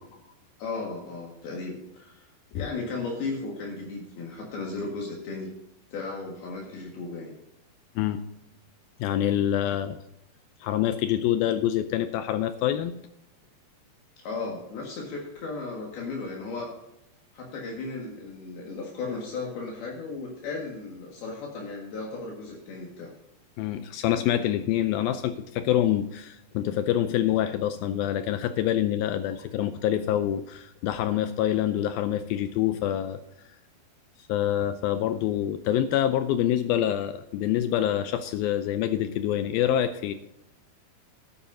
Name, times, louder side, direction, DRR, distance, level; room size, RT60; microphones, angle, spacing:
voice 1, 0.6-2.3 2.5-5.5 5.9-7.3 14.2-16.7 17.3-23.1, left 3 dB, 65° left, -2 dB, 3.6 m, -35 dB
voice 2, 9.0-10.0 10.6-12.9 23.6-33.2 34.3-40.1, left 11 dB, 85° left, 10 dB, 2.1 m, -26 dB
13.0 x 11.5 x 2.7 m, 0.84 s
omnidirectional pair, 4.9 m